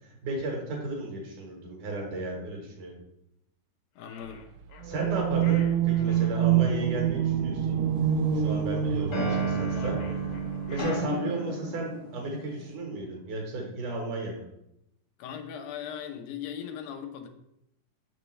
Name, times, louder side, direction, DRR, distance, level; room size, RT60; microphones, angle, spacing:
voice 1, 0.2-3.0 4.8-7.8 8.3-10.0 10.7-14.4, right 2 dB, 65° right, 0 dB, 2.7 m, -34 dB
voice 2, 4.0-4.4 6.1-6.4 15.2-17.3, left 8 dB, 90° left, 5 dB, 2.6 m, -39 dB
sound 1, 4.0-6.4 9.6-11.7, left 6 dB, 75° left, 1.9 m, -49 dB
sound 2, 4.8-10.8, right 9 dB, 85° right, 2.4 m, -26 dB
sound 3, 7.6-8.5 9.1-12.7, right 3 dB, 45° left, 1.0 m, -32 dB
6.9 x 6.5 x 3.2 m, 0.80 s
omnidirectional pair, 4.1 m